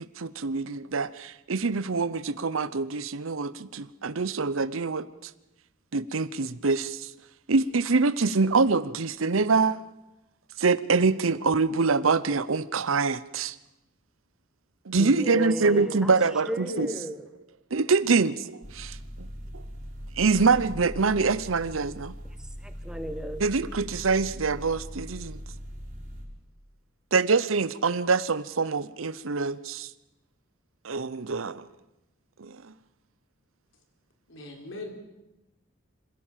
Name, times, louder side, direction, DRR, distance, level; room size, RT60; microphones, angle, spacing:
voice 1, 0.0-5.1 5.9-7.0 7.5-9.8 10.6-13.5 14.9-16.9 17.7-19.3 20.2-22.1 23.4-25.4 27.1-29.9 30.8-31.6 32.4-32.5, right 4 dB, 85° right, 17 dB, 0.8 m, -25 dB
voice 2, 15.0-16.1 16.5-17.2 22.6-23.4, equal, 5° right, 7 dB, 1.2 m, -34 dB
sound 1, 18.6-26.2, equal, 35° right, 4.8 m, -40 dB
voice 3, 34.3-34.9, left 1 dB, 70° left, 3 dB, 4.0 m, -37 dB
26.5 x 16.5 x 7.4 m, 0.96 s
head